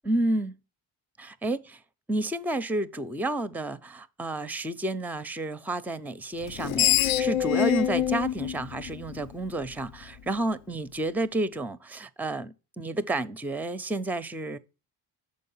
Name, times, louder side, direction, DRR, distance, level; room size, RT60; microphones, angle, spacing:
voice 1, 0.1-0.5 1.2-1.6 2.1-14.6, right 2 dB, 5° right, 0.4 m, -30 dB
Screech, 6.4-9.7, left 11 dB, 70° left, 0.5 m, -26 dB
6.5 x 4.6 x 5.5 m
cardioid pair, 70°, 50 cm